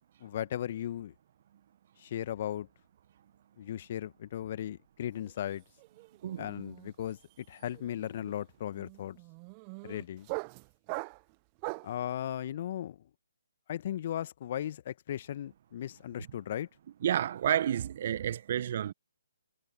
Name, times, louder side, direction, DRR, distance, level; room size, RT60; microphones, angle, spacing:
voice 1, 0.2-1.1 2.0-2.7 3.6-5.6 6.4-9.2 9.8-10.3 11.8-13.0 13.7-16.7, left 11 dB, 40° left, 1.4 m, -37 dB
sound 1, 5.2-5.5 5.8-12.0, right 32 dB, 25° right, 0.8 m, -42 dB
voice 2, 17.0-18.9, right 10 dB, 45° right, 1.4 m, -30 dB
figure-of-eight pair, 140°, 0 cm